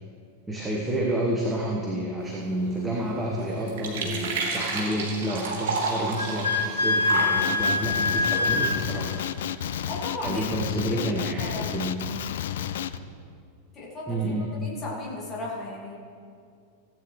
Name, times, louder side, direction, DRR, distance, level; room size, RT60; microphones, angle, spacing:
voice 1, 0.5-9.1 10.2-11.9 14.1-14.5, right 1 dB, 10° right, -2 dB, 1.2 m, -29 dB
sound 1, 2.2-9.4, right 3 dB, 55° right, 2.0 m, -33 dB
Wind instrument woodwind instrument, 6.2-8.7, left 3 dB, 80° left, 0.8 m, -24 dB
Male speech man speaking, 7.4-13.0, left 10 dB, 60° left, 0.4 m, -31 dB
voice 2, 9.9-10.5 10.9-11.8 13.7-14.3 14.6-16.0, left 1 dB, 25° left, -4 dB, 2.4 m, -36 dB
15.5 x 8.9 x 3.2 m, 2.4 s
figure-of-eight pair, 90°, 0 cm